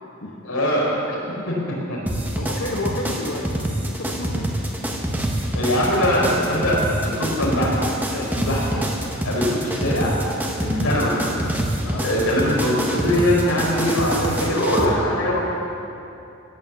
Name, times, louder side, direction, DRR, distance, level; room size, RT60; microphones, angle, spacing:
voice 1, 0.4-1.2 1.5-2.0 5.5-7.7 8.1-8.8 9.2-10.1 10.6-11.4 12.0-15.4, equal, 80° left, -3 dB, 4.5 m, -22 dB
sound 1, 2.1-14.9, right 1 dB, 10° right, 1.3 m, -26 dB
voice 2, 2.4-3.5 3.8-4.5 11.8-12.2, left 1 dB, 60° left, -3 dB, 1.4 m, -30 dB
17.5 x 9.0 x 7.6 m, 2.7 s
head